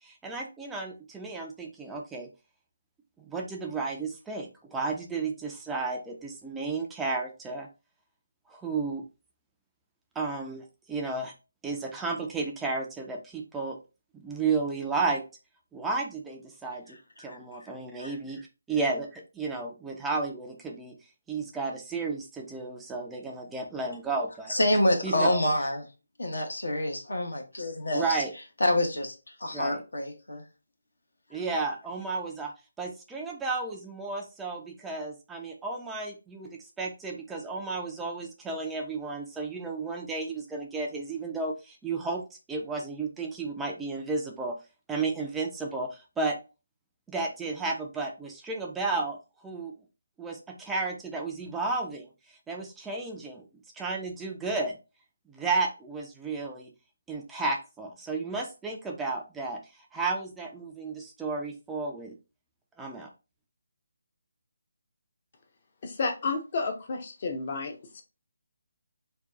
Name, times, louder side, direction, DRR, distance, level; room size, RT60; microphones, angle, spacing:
voice 1, 0.0-2.3 3.2-7.7 8.5-9.0 10.2-11.3 11.6-13.8 14.1-15.2 15.7-21.0 21.3-24.5 25.0-25.4 27.9-28.3 29.5-29.8 31.3-32.5 32.8-42.2 42.5-44.6 44.9-46.4 47.1-49.2 49.4-49.7 50.2-53.4 53.7-54.8 55.3-56.7 57.1-59.6 59.9-62.1 62.8-63.1, right 3 dB, 5° right, 0 dB, 0.3 m, -33 dB
voice 2, 17.2-17.7 18.0-18.1 24.5-25.8 26.2-28.0 28.6-30.4, left 1 dB, 75° left, 3 dB, 0.9 m, -27 dB
voice 3, 65.8-68.0, left 4 dB, 40° left, 4 dB, 0.6 m, -31 dB
2.7 x 2.2 x 3.4 m, 0.30 s
figure-of-eight pair, 150°, 0 cm